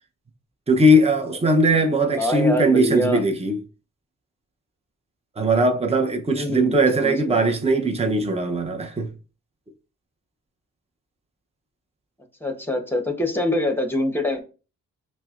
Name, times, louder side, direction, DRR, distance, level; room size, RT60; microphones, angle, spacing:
voice 1, 0.7-3.6 5.4-9.1, right 1 dB, 20° right, 0.7 m, -20 dB
voice 2, 2.1-3.2 6.3-7.5 12.4-14.4, left 1 dB, 5° left, 1.0 m, -25 dB
5.6 x 2.2 x 2.4 m
cardioid pair, 50°, 34 cm